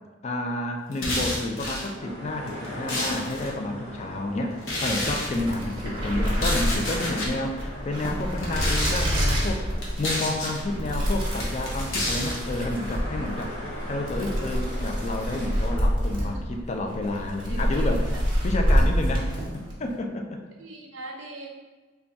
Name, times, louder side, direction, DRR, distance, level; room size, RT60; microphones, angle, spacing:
voice 1, 0.2-13.6 13.9-18.2 18.4-20.4, left 2 dB, 35° left, 3 dB, 0.4 m, -30 dB
sound 1, 0.9-1.9 2.5-3.5 4.6-5.3 6.3-7.3 8.3-9.1 9.8-10.6 11.4-12.4, left 1 dB, 80° left, 0.9 m, -29 dB
sound 2, 2.0-15.9, equal, 55° left, 1.1 m, -41 dB
sound 3, 5.0-19.8, equal, 25° right, 0.9 m, -27 dB
voice 2, 16.2-16.6 17.5-18.2 20.5-21.5, right 2 dB, 75° right, 1 dB, 0.6 m, -42 dB
3.4 x 2.3 x 3.9 m, 1.3 s
head